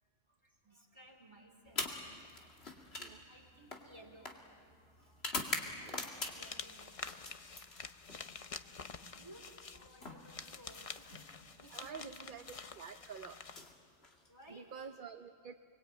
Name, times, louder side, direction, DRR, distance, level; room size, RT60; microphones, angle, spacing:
voice 1, 0.4-1.9 2.3-5.2 5.8-7.6 8.8-12.4 14.3-14.9, right 1 dB, 20° right, 1 dB, 4.1 m, -59 dB
sound 1, 1.7-6.6 7.0-8.2 9.4-11.3 12.3-12.6 13.4-14.5, left 2 dB, 55° left, 2.6 m, -44 dB
voice 2, 5.6-6.1 11.7-12.4 12.8-13.4 14.5-15.5, right 6 dB, 45° right, 7 dB, 0.9 m, -49 dB
sound 2, 6.1-13.6, left 5 dB, 35° left, 0.7 m, -48 dB
29.5 x 22.5 x 8.9 m, 2.1 s
omnidirectional pair, 1.3 m